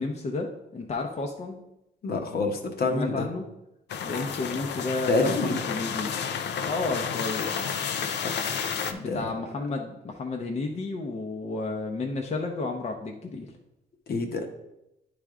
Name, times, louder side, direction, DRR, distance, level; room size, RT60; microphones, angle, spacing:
voice 1, 0.0-1.6 2.9-3.5 4.0-7.5 8.8-13.5, left 3 dB, 40° left, 1 dB, 0.7 m, -32 dB
voice 2, 2.0-3.3 5.1-5.6 8.2-8.3 9.0-9.3 14.1-14.5, left 3 dB, 65° left, 3 dB, 1.0 m, -27 dB
sound 1, 3.9-8.9, left 7 dB, 80° left, 0.5 m, -31 dB
9.6 x 3.5 x 3.7 m, 0.89 s
cardioid pair, 100°, 18 cm